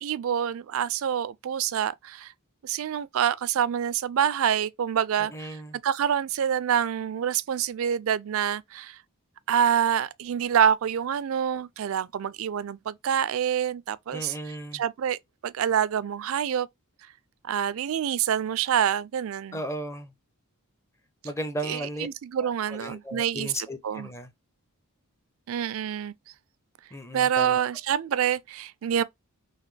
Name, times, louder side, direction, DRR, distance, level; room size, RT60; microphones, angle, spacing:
voice 1, 0.0-2.3 2.6-5.6 5.8-9.0 9.5-14.3 14.7-16.7 17.4-19.6 21.6-23.5 23.8-24.1 25.5-26.1 27.1-29.0, right 9 dB, 65° right, 0.3 m, -26 dB
voice 2, 5.3-5.8 14.1-14.8 19.5-20.1 21.2-22.1 22.4-24.3 26.9-27.6, equal, 15° left, 0.5 m, -35 dB
4.0 x 2.9 x 3.2 m
head